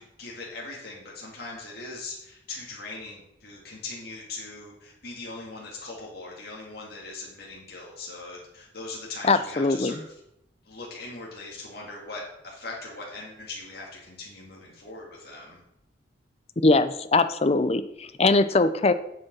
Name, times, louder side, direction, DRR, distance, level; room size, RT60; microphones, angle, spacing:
voice 1, 0.0-10.1 10.7-15.6, left 3 dB, 55° left, -4 dB, 2.1 m, -40 dB
voice 2, 9.3-9.9 16.6-18.9, left 3 dB, 35° left, 12 dB, 0.5 m, -21 dB
7.7 x 7.2 x 6.0 m, 0.80 s
head